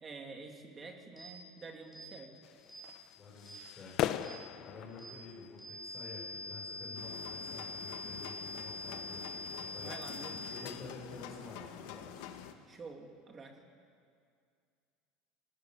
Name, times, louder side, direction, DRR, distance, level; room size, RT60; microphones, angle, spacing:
voice 1, 0.0-2.3 9.8-10.4 12.7-13.7, right 4 dB, 20° right, 3 dB, 2.9 m, -48 dB
sound 1, 1.2-1.3 1.9-2.1 2.7-2.9 3.5-3.6 4.2-4.4 5.0-5.1 5.6-10.6, left 2 dB, 5° right, 6.0 m, -44 dB
sound 2, 2.4-12.9, left 12 dB, 45° left, 0.9 m, -44 dB
voice 2, 3.2-4.3 4.6-12.2, left 3 dB, 20° left, -5 dB, 6.3 m, -50 dB
sound 3, 6.9-12.5, left 10 dB, 75° left, 1.8 m, -47 dB
27.5 x 19.0 x 9.3 m, 2.3 s
cardioid pair, 160°, 0 cm